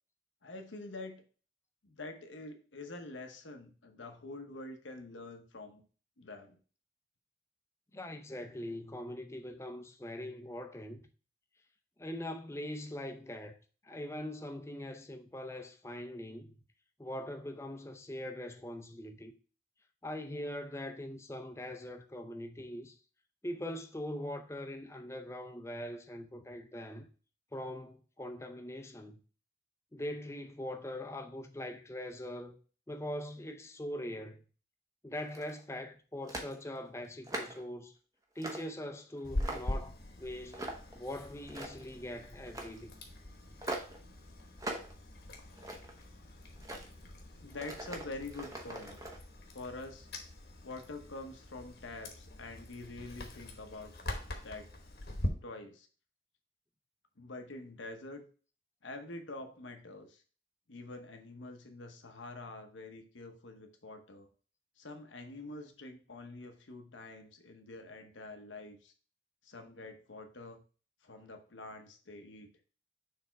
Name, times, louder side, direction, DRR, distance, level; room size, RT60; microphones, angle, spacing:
voice 1, 0.4-1.2 1.8-5.8 6.2-6.6 47.4-49.0 49.5-50.1 50.6-54.7 55.4-55.9 57.2-58.2 58.8-60.2 60.7-64.3 64.8-68.9 69.4-70.6 71.0-72.5, left 2 dB, 90° left, 1.0 m, -46 dB
voice 2, 7.9-11.0 12.0-13.6 13.8-16.6 17.0-19.3 20.0-23.0 23.4-27.1 27.5-29.2 29.9-32.6 32.9-34.4 35.0-37.9 38.4-43.0 47.4-47.5, left 1 dB, 15° left, 0.5 m, -42 dB
sound 1, 35.2-35.6 36.3-36.5 37.0-37.7 38.4-38.7 39.2-39.8 40.5-41.0 41.4-41.9 42.5-42.8 43.6-44.0 44.6-44.9 45.3-46.0 46.6-46.9 47.5-49.2, right 1 dB, 20° right, 0.8 m, -41 dB
Chewing mastication, 39.2-55.3, left 1 dB, 55° left, 1.1 m, -43 dB
6.6 x 3.5 x 4.5 m
head